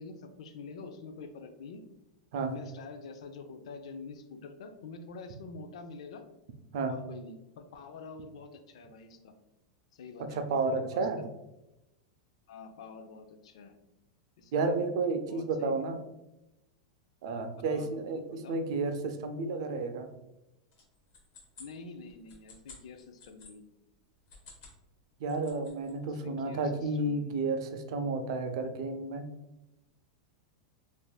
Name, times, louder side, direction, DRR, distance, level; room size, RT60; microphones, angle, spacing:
voice 1, 0.0-1.8 2.3-6.2 6.9-9.3 9.9-11.1 12.5-13.8 14.4-14.8 15.3-15.9 17.6-17.9 18.3-18.6 21.6-23.6 26.1-27.4, left 4 dB, 70° left, 7 dB, 0.4 m, -46 dB
voice 2, 10.2-11.2 14.5-16.0 17.2-20.1 25.2-29.3, right 3 dB, 50° right, 7 dB, 0.3 m, -31 dB
sound 1, 20.7-23.5 24.2-24.8 25.1-25.9, left 4 dB, 30° left, 0.8 m, -53 dB
3.4 x 2.5 x 2.3 m, 0.93 s
supercardioid pair, 170°, 3 cm